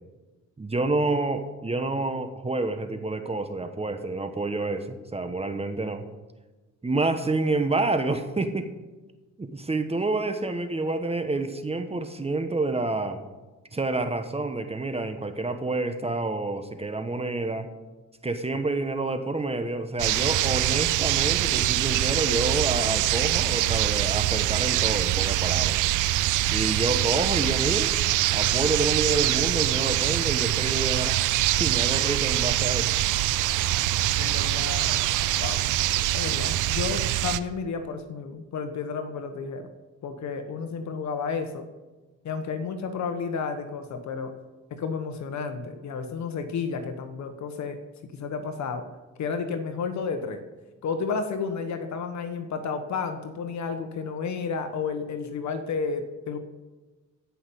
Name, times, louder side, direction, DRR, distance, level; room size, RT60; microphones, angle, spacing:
voice 1, 0.6-6.0 6.8-8.7 9.4-13.2 13.7-17.7 18.2-25.8 26.5-27.9 28.3-32.9, right 2 dB, 20° right, 8 dB, 1.2 m, -28 dB
sound 1, 20.0-37.4, right 15 dB, 80° right, 0.6 m, -24 dB
voice 2, 34.2-35.0 35.4-35.6 36.1-39.7 40.0-41.7 42.2-44.3 44.7-47.8 48.0-48.8 49.2-50.4 50.8-56.4, left 5 dB, 65° left, 8 dB, 1.3 m, -31 dB
14.5 x 5.8 x 8.4 m, 1.2 s
cardioid pair, 90°, 30 cm